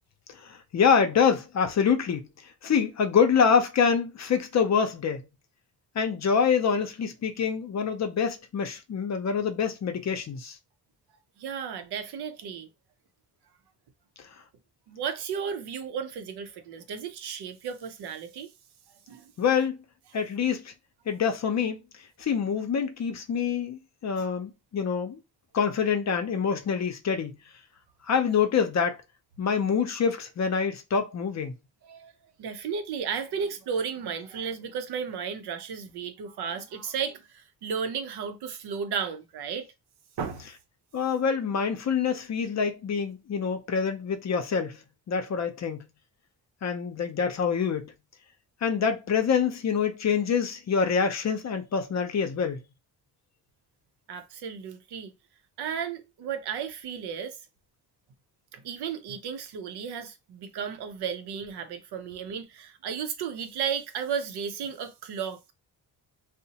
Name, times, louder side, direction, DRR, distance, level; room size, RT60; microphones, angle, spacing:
voice 1, 0.4-2.3 2.6-5.2 6.0-10.6 19.4-19.8 20.1-20.7 21.1-21.8 22.2-25.2 25.5-27.4 28.0-29.0 29.4-31.5 40.9-44.8 45.1-45.8 46.6-47.9 48.6-52.6, left 6 dB, 45° left, 0.6 m, -26 dB
voice 2, 11.4-12.7 14.9-18.5 19.1-19.3 24.2-24.3 31.8-32.1 32.4-39.7 40.2-40.5 54.1-55.1 55.6-57.4 58.5-65.4, right 7 dB, 80° right, 0.6 m, -34 dB
2.8 x 2.1 x 2.8 m
cardioid pair, 105°, 39 cm